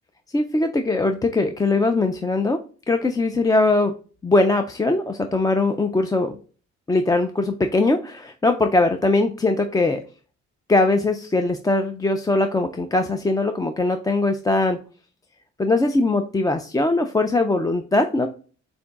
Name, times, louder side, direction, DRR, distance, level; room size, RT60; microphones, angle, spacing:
voice 1, 0.3-2.6 2.9-3.9 4.2-6.4 6.9-10.0 10.7-14.8 15.6-18.3, left 2 dB, 15° left, 6 dB, 0.3 m, -21 dB
6.7 x 2.6 x 2.3 m, 0.38 s
cardioid pair, 90°, 30 cm